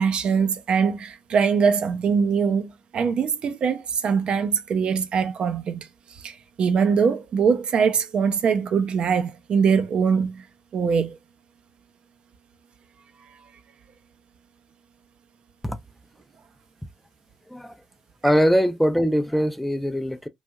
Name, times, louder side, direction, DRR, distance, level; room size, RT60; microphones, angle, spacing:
voice 1, 0.0-5.9 6.2-10.4 10.7-11.2, right 6 dB, 60° right, 0.5 m, -22 dB
voice 2, 18.2-20.3, equal, 5° left, 0.5 m, -22 dB
3.2 x 2.5 x 2.3 m
supercardioid pair, 55°, 2 cm